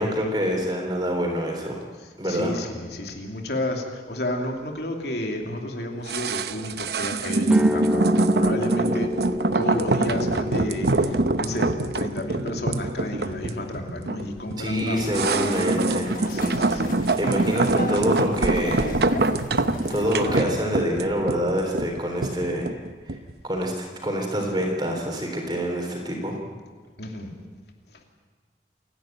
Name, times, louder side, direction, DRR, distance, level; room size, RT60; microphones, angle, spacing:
voice 1, 0.0-1.8 2.2-2.5 14.6-16.2 16.6-16.8 17.2-19.0 19.5-19.6 19.9-22.7 23.1-23.2 23.4-23.7 24.0-26.4, equal, 25° right, 1 dB, 3.7 m, -26 dB
voice 2, 2.2-9.1 9.5-15.2 15.6-15.8 16.3-17.0 27.0-27.3, left 1 dB, 70° left, 2 dB, 2.9 m, -31 dB
sound 1, 6.1-23.3 23.6-23.7, right 2 dB, 70° right, 0.8 m, -24 dB
sound 2, 7.4-15.5, left 2 dB, 5° right, 0.7 m, -31 dB
sound 3, 14.9-20.4, left 2 dB, 50° left, 1.6 m, -35 dB
28.5 x 11.0 x 9.2 m, 1.4 s
head